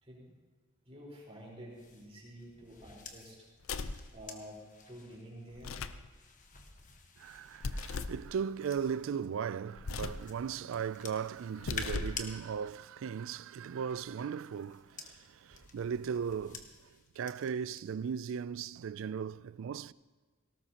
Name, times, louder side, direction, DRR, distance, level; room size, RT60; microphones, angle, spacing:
voice 1, 0.0-0.4 0.8-3.5 4.1-5.9 14.9-15.1, equal, 30° right, 4.3 m, -50 dB
sound 1, 1.7-9.3 9.9-12.3 13.6-17.8 18.2-18.5, left 5 dB, 40° left, 1.3 m, -50 dB
sound 2, 3.6-4.1 5.5-6.1 7.6-8.2 9.8-10.3 11.5-12.3, left 4 dB, 70° left, 0.6 m, -38 dB
voice 2, 7.2-19.9, right 7 dB, 65° right, 0.3 m, -37 dB
18.5 x 18.0 x 2.9 m
head